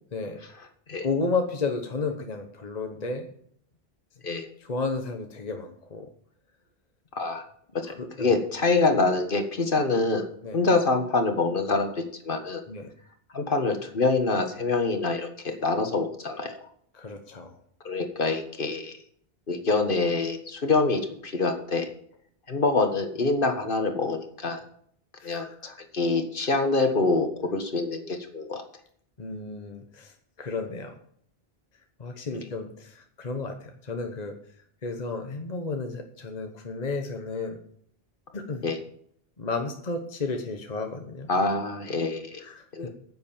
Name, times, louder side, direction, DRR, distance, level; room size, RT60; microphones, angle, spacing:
voice 1, 1.0-3.3 4.6-6.1 8.0-8.4 10.4-10.6 12.7-12.9 16.9-17.6 25.2-25.7 26.4-26.5 29.2-31.0 32.0-34.4 34.8-37.6 38.3-38.6 39.4-41.3 42.4-42.9, left 3 dB, 40° left, 5 dB, 1.2 m, -32 dB
voice 2, 7.1-7.4 7.7-10.3 10.5-12.6 13.3-16.6 17.8-19.0 19.5-21.9 22.5-24.6 25.2-28.6 32.3-32.4 38.6-38.8 41.3-42.4 42.7-42.9, left 3 dB, 55° left, 6 dB, 1.6 m, -26 dB
10.5 x 8.0 x 7.2 m, 0.63 s
omnidirectional pair, 1.0 m